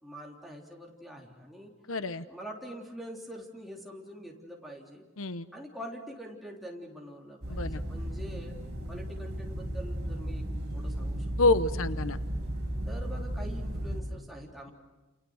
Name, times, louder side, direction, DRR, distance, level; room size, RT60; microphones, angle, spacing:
voice 1, 0.0-1.7 2.3-5.0 5.5-8.6 8.9-10.4 10.7-11.6 12.9-14.7, equal, ahead, -2 dB, 3.4 m, -44 dB
voice 2, 1.9-2.2 5.2-5.5 7.5-7.8 11.4-12.2, left 3 dB, 75° left, 12 dB, 0.9 m, -27 dB
sound 1, 7.4-14.0, right 1 dB, 55° right, 6.7 m, -34 dB
29.5 x 29.0 x 6.4 m, 1.1 s
head